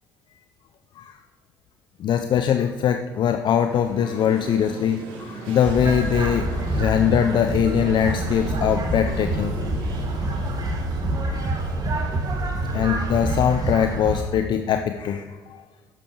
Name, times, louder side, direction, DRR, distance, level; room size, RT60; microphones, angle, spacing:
voice 1, 2.0-9.5 10.2-10.4 11.2-11.6 12.7-15.6, left 8 dB, 55° left, 7 dB, 0.6 m, -22 dB
sound 1, 3.5-13.5, right 3 dB, 65° right, 2.6 m, -40 dB
sound 2, 5.7-14.2, right 1 dB, 40° right, 1.7 m, -26 dB
10.5 x 7.1 x 4.7 m, 1.4 s
hypercardioid pair, 65°, 10 cm